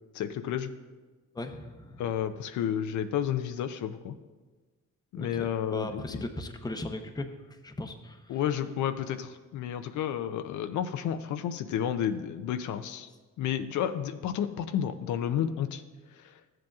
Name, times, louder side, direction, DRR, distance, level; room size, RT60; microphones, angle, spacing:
voice 1, 0.1-0.7 2.0-4.1 5.1-6.2 8.3-13.1 13.4-15.8 16.1-16.4, left 9 dB, 75° left, 9 dB, 0.5 m, -31 dB
voice 2, 1.3-2.0 5.2-8.4, left 2 dB, 15° left, 6 dB, 0.7 m, -38 dB
13.5 x 7.6 x 2.4 m, 1.3 s
cardioid pair, 90°, 30 cm